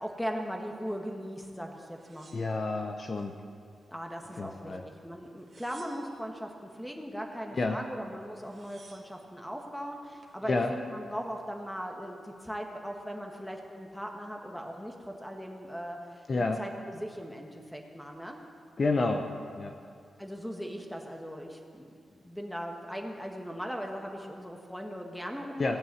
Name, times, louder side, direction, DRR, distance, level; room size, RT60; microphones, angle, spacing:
voice 1, 0.0-2.3 3.9-16.2 16.6-18.4 20.2-25.8, equal, 5° left, 2 dB, 1.5 m, -39 dB
sound 1, 1.9-3.3 3.7-4.5 5.3-6.3 7.9-8.0 8.2-9.2 9.9-10.4, right 4 dB, 45° right, 1.8 m, -58 dB
voice 2, 2.3-3.4 4.3-4.8 7.5-7.8 10.4-10.7 16.3-16.6 18.8-19.3 19.6-19.8 25.6-25.8, left 3 dB, 40° left, 5 dB, 0.7 m, -29 dB
17.0 x 6.1 x 9.3 m, 2.3 s
wide cardioid pair, 125°, 0 cm